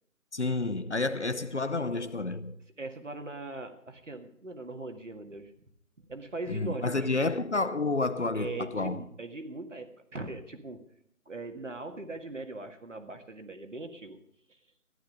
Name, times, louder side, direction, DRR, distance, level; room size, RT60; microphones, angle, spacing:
voice 1, 0.3-2.6 6.5-9.0, left 3 dB, 50° left, 0.8 m, -30 dB
voice 2, 2.8-5.7 6.0-7.1 8.3-10.8 11.3-14.2 14.5-14.6, right 2 dB, 55° right, 2.0 m, -40 dB
14.5 x 11.5 x 5.3 m
figure-of-eight pair, 165°, 43 cm